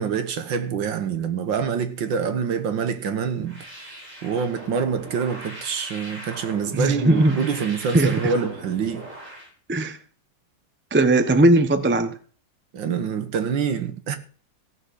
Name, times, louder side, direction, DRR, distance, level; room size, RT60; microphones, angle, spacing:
voice 1, 0.0-3.7 4.2-9.1 12.7-14.2, right 6 dB, 65° right, 1.9 m, -26 dB
sound 1, 3.4-9.5, right 1 dB, 35° right, 5.9 m, -40 dB
voice 2, 6.7-7.4 7.9-8.3 9.7-10.0 10.9-12.1, right 2 dB, 10° right, 0.5 m, -18 dB
16.0 x 6.3 x 8.0 m
omnidirectional pair, 2.3 m